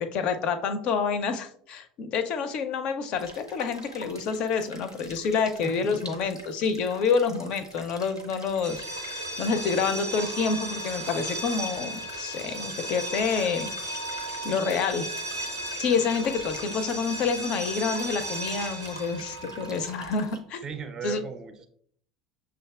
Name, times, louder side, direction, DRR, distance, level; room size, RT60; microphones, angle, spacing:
voice 1, 0.0-14.1 14.4-15.1 15.8-20.6 21.0-21.2, left 5 dB, 45° left, 10 dB, 0.4 m, -28 dB
sound 1, 3.2-20.4, equal, 90° left, 0.6 m, -47 dB
voice 2, 5.6-6.2 20.6-21.7, right 6 dB, 25° right, 8 dB, 0.4 m, -37 dB
sound 2, 8.6-20.3, right 1 dB, 80° right, 0.5 m, -35 dB
6.1 x 2.3 x 2.3 m, 0.62 s
figure-of-eight pair, 70°, 2 cm